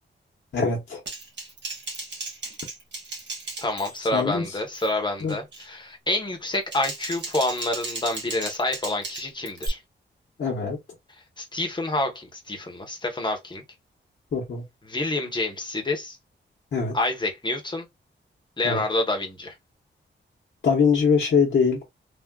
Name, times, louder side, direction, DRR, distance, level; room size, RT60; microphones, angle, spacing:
voice 1, 0.5-1.0 4.1-4.4 5.2-5.4 10.4-10.8 14.3-14.6 16.7-16.9 18.6-18.8 20.6-21.8, left 5 dB, 60° left, 1.0 m, -22 dB
Typing, 1.1-4.2 4.5-4.9 5.3-5.7 6.5-9.7, right 3 dB, 65° right, 1.4 m, -36 dB
voice 2, 3.6-9.8 11.4-13.6 14.9-16.2 16.9-17.9 18.6-19.5, left 2 dB, 25° left, 0.9 m, -28 dB
3.5 x 2.4 x 2.2 m
wide cardioid pair, 160°, 20 cm